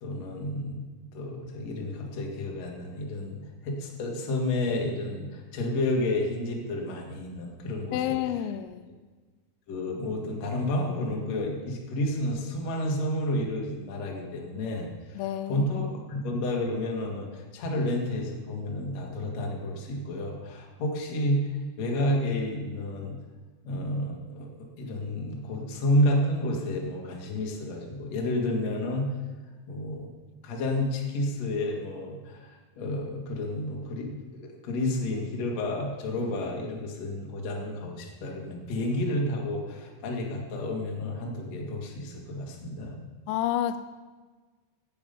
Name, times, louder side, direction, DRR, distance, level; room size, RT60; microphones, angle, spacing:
voice 1, 0.0-0.9 1.1-3.4 3.6-8.2 9.7-15.2 15.5-15.8 16.1-21.5 21.8-23.2 23.6-24.5 24.8-29.1 29.7-30.1 30.4-43.0, left 1 dB, 45° left, -1 dB, 2.3 m, -30 dB
voice 2, 7.9-8.9 15.2-15.7 43.3-43.8, left 11 dB, 90° left, 11 dB, 3.2 m, -29 dB
15.5 x 8.6 x 5.3 m, 1.4 s
omnidirectional pair, 5.8 m